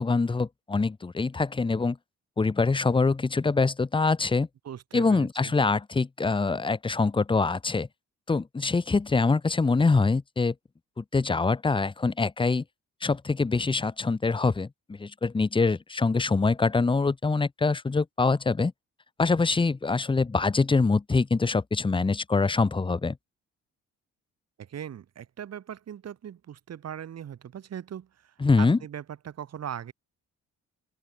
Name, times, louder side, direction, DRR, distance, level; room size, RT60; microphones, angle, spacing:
voice 1, 0.0-2.0 2.4-4.5 4.9-7.9 8.3-10.5 11.0-12.6 13.0-18.7 19.2-23.2 28.4-28.8, left 4 dB, 15° left, 0.8 m, -24 dB
voice 2, 4.6-5.5 24.6-28.1 28.6-29.9, right 9 dB, 55° right, 2.5 m, -39 dB
open air
cardioid pair, 90°, 30 cm